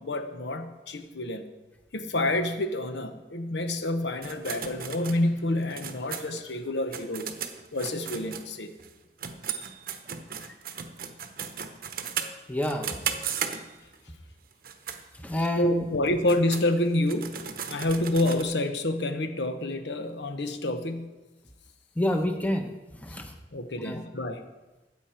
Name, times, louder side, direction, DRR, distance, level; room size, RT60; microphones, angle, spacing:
voice 1, 0.0-1.5 1.9-7.3 7.7-8.7 10.4-10.5 15.6-21.2 23.1-23.2 23.5-24.4, left 1 dB, 80° left, 7 dB, 1.0 m, -28 dB
sound 1, 4.2-8.9 9.2-14.0 14.5-15.0 15.4-15.5 16.1-18.4, right 7 dB, 55° right, 0.9 m, -36 dB
voice 2, 12.5-13.0 15.2-15.8 22.0-23.3 23.8-24.0, left 1 dB, 10° left, 4 dB, 0.9 m, -28 dB
14.0 x 9.0 x 4.4 m, 1.1 s
head